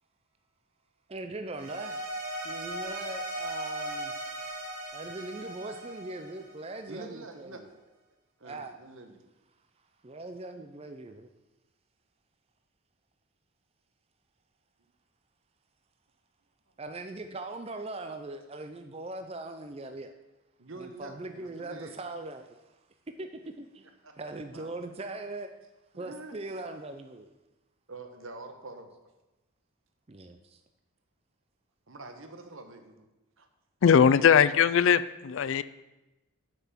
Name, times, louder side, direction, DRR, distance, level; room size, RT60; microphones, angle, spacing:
voice 1, 1.1-2.0 2.4-4.1 4.9-7.7 8.4-8.8 10.0-11.3 16.8-20.1 20.8-22.6 23.2-23.3 23.6-23.9 24.2-25.5 26.0-27.3 30.1-30.6, right 2 dB, 25° right, 7 dB, 0.5 m, -40 dB
sound 1, 1.6-6.9, right 1 dB, 80° right, 2.5 m, -38 dB
voice 2, 6.9-7.8 8.4-9.2 20.6-21.9 24.0-24.1 24.5-24.9 25.9-26.3 27.9-28.9 31.9-33.1 33.4-33.5 33.8-34.5, right 2 dB, 60° right, 6 dB, 1.1 m, -46 dB
voice 3, 33.8-35.6, left 7 dB, 60° left, 15 dB, 0.3 m, -20 dB
7.6 x 5.7 x 7.4 m, 1.0 s
head